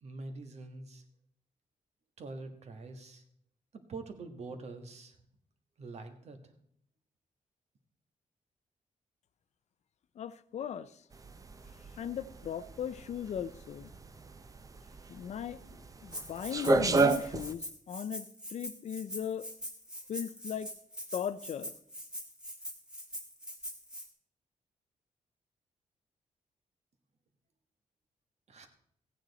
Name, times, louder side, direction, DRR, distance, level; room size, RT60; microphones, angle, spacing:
voice 1, 0.0-1.0 2.2-3.2 3.7-5.2 5.8-6.4 28.5-28.7, right 3 dB, 60° right, 7 dB, 1.4 m, -45 dB
voice 2, 10.2-10.9 12.0-13.9 15.1-15.6 16.0-18.3 18.5-19.5 20.1-20.7 21.1-21.8, left 8 dB, 65° left, 16 dB, 0.5 m, -37 dB
sound 1, 11.1-17.5, right 3 dB, 25° right, 0.6 m, -31 dB
Rattle (instrument), 16.1-24.1, equal, 5° right, 1.6 m, -43 dB
15.0 x 9.0 x 4.1 m, 0.67 s
wide cardioid pair, 135°, 13 cm